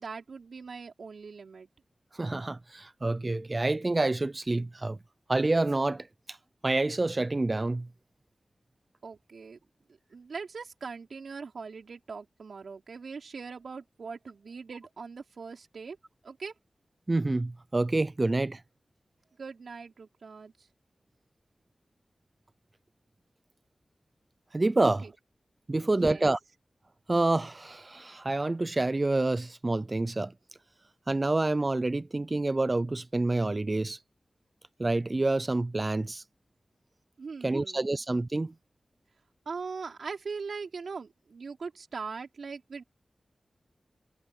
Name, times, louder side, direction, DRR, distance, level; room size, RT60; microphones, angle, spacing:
voice 1, 0.0-1.7 9.0-9.6 10.1-16.0 16.2-16.5 19.4-20.5 25.0-25.1 25.7-26.3 37.2-38.0 39.5-42.8, right 5 dB, 80° right, 4.2 m, -41 dB
voice 2, 2.1-5.0 5.3-6.4 6.6-7.9 17.1-18.6 24.5-25.0 25.7-26.4 27.1-30.3 31.1-34.0 34.8-36.2 37.4-38.5, right 2 dB, 35° right, 0.4 m, -28 dB
cardioid pair, 60°, 0 cm